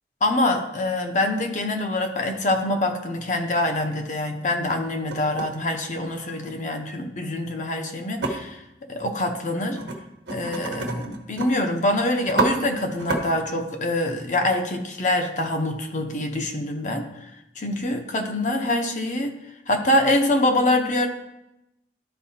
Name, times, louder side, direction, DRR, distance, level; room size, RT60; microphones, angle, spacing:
voice 1, 0.2-8.6 8.9-9.8 10.3-17.1 17.6-19.3 19.7-21.1, left 1 dB, 45° left, 4 dB, 0.8 m, -25 dB
sound 1, 3.0-3.1 3.6-3.7 4.4-4.8 5.1-6.5 8.2-8.3 9.7-10.0 10.3-11.5 11.8-11.9 12.2-12.5 13.0-13.2, right 3 dB, 85° right, 1.1 m, -28 dB
12.5 x 4.6 x 2.8 m, 0.88 s
head